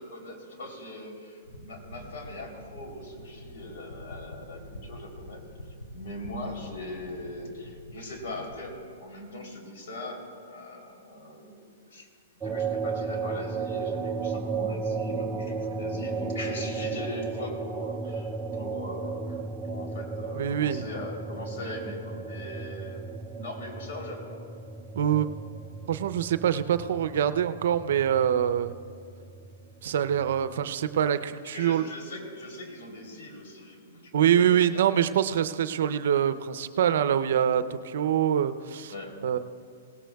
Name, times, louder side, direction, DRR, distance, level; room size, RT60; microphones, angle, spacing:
voice 1, 0.0-5.4 5.9-12.1 12.4-19.4 19.6-23.1 23.3-24.4 31.4-34.8 38.9-39.2, left 1 dB, 65° left, 1 dB, 3.3 m, -40 dB
sound 1, 1.4-8.9, equal, 90° left, 2.3 m, -46 dB
sound 2, 12.4-31.1, right 4 dB, 15° right, 0.4 m, -35 dB
voice 2, 20.3-20.8 24.9-25.3 25.9-28.7 29.8-31.8 34.1-38.9 39.2-39.4, right 9 dB, 70° right, 12 dB, 0.6 m, -25 dB
18.0 x 17.0 x 2.3 m, 2.3 s
hypercardioid pair, 135°, 0 cm